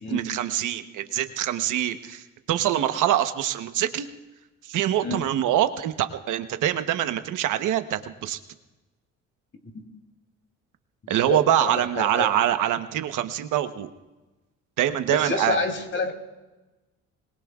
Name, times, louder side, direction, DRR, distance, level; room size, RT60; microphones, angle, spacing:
voice 1, 0.1-4.1 4.6-8.4 11.1-13.9 14.8-15.6, right 11 dB, 85° right, 9 dB, 1.0 m, -24 dB
voice 2, 11.0-12.3 15.1-16.1, left 3 dB, 40° left, 4 dB, 3.0 m, -29 dB
25.5 x 21.0 x 2.4 m, 1.1 s
cardioid pair, 90°, 30 cm